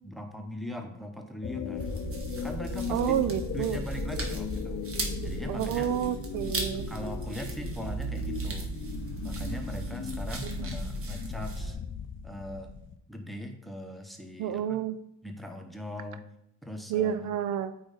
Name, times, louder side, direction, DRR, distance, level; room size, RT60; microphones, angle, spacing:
voice 1, 0.0-2.1 2.4-4.8 5.2-6.0 6.7-8.7 9.2-11.8 12.2-12.7 13.1-14.8 15.2-16.3 16.6-17.3, equal, ahead, 4 dB, 0.9 m, -40 dB
sound 1, 1.4-13.0, left 8 dB, 40° left, 0.5 m, -38 dB
sound 2, 1.8-11.7, right 3 dB, 45° right, 1.2 m, -36 dB
voice 2, 2.9-3.8 5.5-6.9 10.4-10.8 14.4-15.0 16.9-17.7, right 10 dB, 80° right, 12 dB, 0.5 m, -30 dB
8.6 x 3.2 x 3.9 m, 0.75 s
cardioid pair, 90°, 30 cm